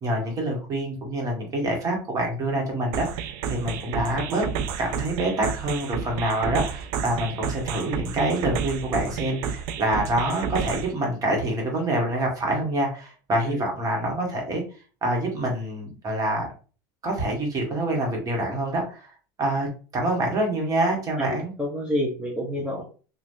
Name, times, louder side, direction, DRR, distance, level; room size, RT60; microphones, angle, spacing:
voice 1, 0.0-4.4 4.8-14.6 15.0-16.5 17.0-19.1 19.4-19.7 19.9-21.5, right 1 dB, 35° right, 1 dB, 1.4 m, -26 dB
sound 1, 2.9-10.9, right 7 dB, 65° right, 0.4 m, -31 dB
voice 2, 21.2-22.8, equal, 10° right, -3 dB, 0.8 m, -29 dB
3.1 x 2.5 x 2.7 m, 0.36 s
supercardioid pair, 105°, 10 cm